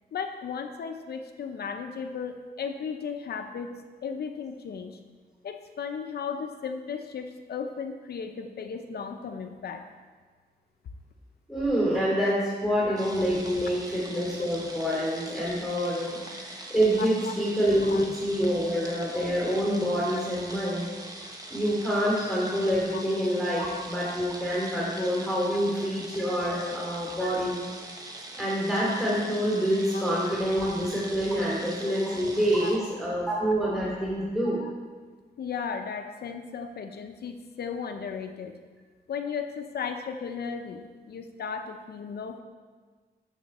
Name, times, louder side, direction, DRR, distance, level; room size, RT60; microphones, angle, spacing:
voice 1, 0.1-5.0 5.4-9.8 15.9-16.1 17.0-17.3 17.8-18.1 18.5-18.6 18.9-19.0 20.1-20.2 22.9-23.0 25.8-25.9 26.5-26.6 29.9-30.4 31.4-31.5 32.1-32.2 32.6-32.8 34.6-34.7 35.4-38.5 39.1-42.4, left 6 dB, 75° left, 6 dB, 0.7 m, -36 dB
voice 2, 11.5-20.9 21.5-27.6 28.3-34.6, equal, ahead, -6 dB, 2.7 m, -27 dB
sound 1, 13.0-32.8, right 1 dB, 20° right, 1.1 m, -42 dB
12.0 x 7.5 x 4.2 m, 1.4 s
wide cardioid pair, 150°, 17 cm